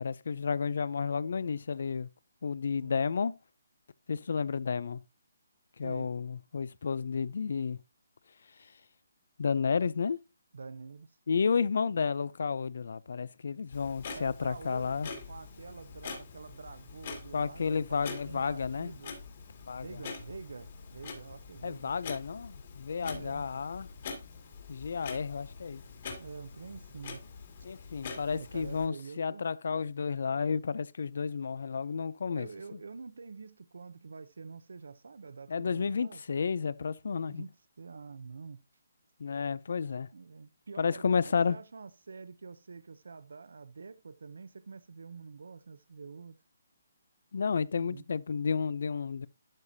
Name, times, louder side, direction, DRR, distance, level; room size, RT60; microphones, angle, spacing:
voice 1, 0.0-2.1 2.4-3.3 4.1-5.0 5.8-7.8 9.4-10.2 11.3-15.1 17.3-18.9 19.7-19.9 21.6-23.9 24.7-25.8 27.6-32.5 35.5-37.4 39.2-40.1 40.8-41.6 47.3-49.3, left 5 dB, 60° left, 0.4 m, -31 dB
voice 2, 10.5-11.1 14.2-19.2 19.8-21.9 23.0-23.4 26.2-27.2 28.3-29.4 32.3-36.2 37.2-37.5 37.8-38.6 40.1-41.2 41.5-46.4 47.7-48.0, right 4 dB, 75° right, 0.6 m, -46 dB
Clock, 13.7-28.9, left 5 dB, 40° left, 2.2 m, -45 dB
12.0 x 4.9 x 2.7 m
hypercardioid pair, 170°, 0 cm